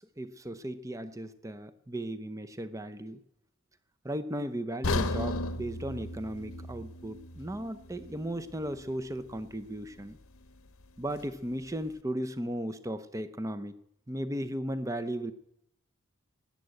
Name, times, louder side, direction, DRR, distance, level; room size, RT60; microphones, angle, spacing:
voice 1, 0.0-3.2 4.0-10.2 11.0-13.8 14.1-15.3, right 1 dB, 15° right, 11 dB, 0.7 m, -36 dB
sound 1, 4.8-8.9 9.2-9.4 10.0-10.1, left 2 dB, 85° left, 0.9 m, -35 dB
13.5 x 9.8 x 7.9 m, 0.78 s
head